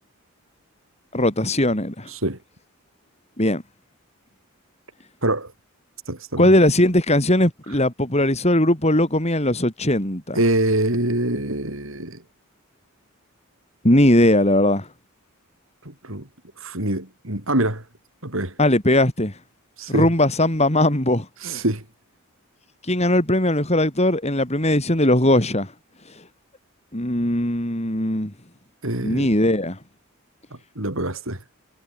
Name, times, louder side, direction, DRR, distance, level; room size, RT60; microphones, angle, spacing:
voice 1, 1.1-2.1 3.4-3.6 6.4-10.4 13.8-14.9 18.6-19.3 19.9-21.3 22.9-25.7 26.9-28.3 29.0-29.8, left 1 dB, 30° left, 4.2 m, -19 dB
voice 2, 2.1-2.4 5.2-5.5 6.1-6.5 10.3-12.2 15.8-16.3 16.6-17.8 18.2-18.5 19.8-20.1 21.4-21.8 28.8-29.3 30.8-31.4, right 1 dB, 60° right, 5.8 m, -24 dB
head